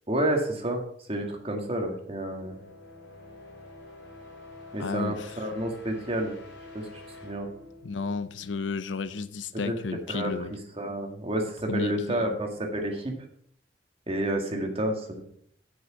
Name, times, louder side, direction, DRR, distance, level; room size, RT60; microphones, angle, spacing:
voice 1, 0.1-0.8 1.1-2.6 4.7-6.3 6.7-6.9 7.2-7.5 9.7-9.8 10.1-10.3 10.8-13.1 14.1-15.2, right 1 dB, 35° right, 1.9 m, -29 dB
sound 1, 1.4-9.1, left 2 dB, 70° left, 4.4 m, -48 dB
voice 2, 4.8-5.5 7.8-10.5 11.7-12.4, left 4 dB, 85° left, 0.6 m, -33 dB
7.9 x 6.3 x 6.9 m
head